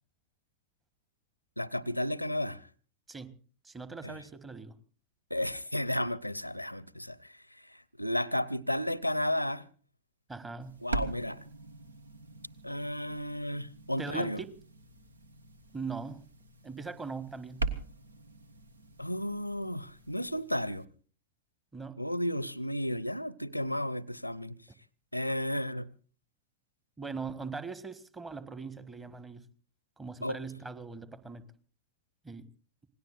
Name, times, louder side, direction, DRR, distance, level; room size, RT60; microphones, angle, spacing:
voice 1, 1.6-2.6 4.0-4.2 5.3-7.2 8.0-9.6 10.8-11.4 12.6-14.4 19.0-20.9 22.0-24.6 25.1-25.9 30.2-30.4, left 1 dB, 90° left, 0.7 m, -33 dB
voice 2, 3.6-4.8 10.3-10.8 14.0-14.5 15.7-16.3 16.6-17.6 21.7-22.0 27.0-29.5 30.0-31.4 32.2-32.5, right 4 dB, 15° right, 1.5 m, -40 dB
sound 1, 10.6-20.9, right 3 dB, 75° right, 1.3 m, -42 dB
27.0 x 19.0 x 2.5 m
figure-of-eight pair, 90°, 0 cm